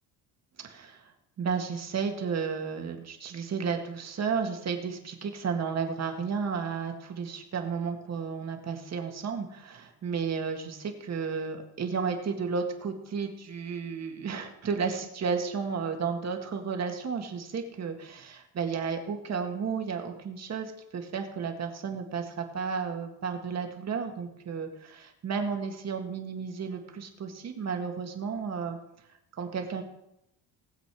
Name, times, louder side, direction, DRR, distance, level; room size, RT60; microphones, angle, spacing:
voice 1, 0.6-1.1 1.4-28.8 29.4-29.8, right 5 dB, 35° right, 4 dB, 1.9 m, -33 dB
19.0 x 7.9 x 4.8 m, 0.83 s
cardioid pair, 155°, 44 cm